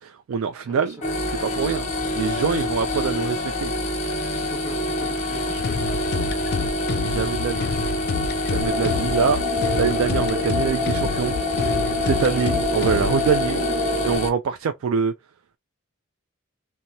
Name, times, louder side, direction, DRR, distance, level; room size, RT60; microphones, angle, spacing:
voice 1, 0.0-1.0 1.3-1.9 2.2-3.7 7.0-7.7 8.4-9.4 9.8-11.4 11.7-15.1, right 6 dB, 65° right, 0.3 m, -25 dB
voice 2, 0.6-1.0 2.5-2.7 3.0-3.1 4.3-5.9, equal, 15° right, 1.3 m, -41 dB
sound 1, 1.0-14.3, left 1 dB, 35° left, 0.8 m, -26 dB
sound 2, 5.6-13.3, left 5 dB, 50° left, 0.3 m, -29 dB
sound 3, 8.6-14.2, left 3 dB, 35° right, 0.9 m, -28 dB
2.9 x 2.2 x 2.6 m
head